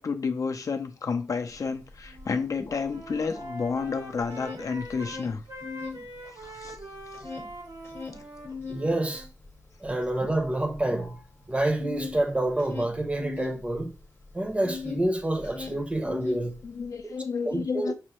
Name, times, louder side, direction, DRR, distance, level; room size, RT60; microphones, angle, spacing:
voice 1, 0.0-5.4 6.2-6.8 16.6-17.9, left 5 dB, 65° left, 0.4 m, -31 dB
sound 1, 1.5-1.6 1.9-3.9 4.2-6.0 6.4-15.1 15.3-16.9, left 4 dB, 40° left, 0.8 m, -40 dB
Wind instrument woodwind instrument, 2.0-2.4 2.7-9.3, right 1 dB, 80° right, 0.9 m, -43 dB
voice 2, 8.7-9.3 9.8-11.2 11.5-13.9 14.3-16.6 17.4-17.9, right 1 dB, 20° right, 0.6 m, -28 dB
5.4 x 2.1 x 2.9 m
wide cardioid pair, 105°, 6 cm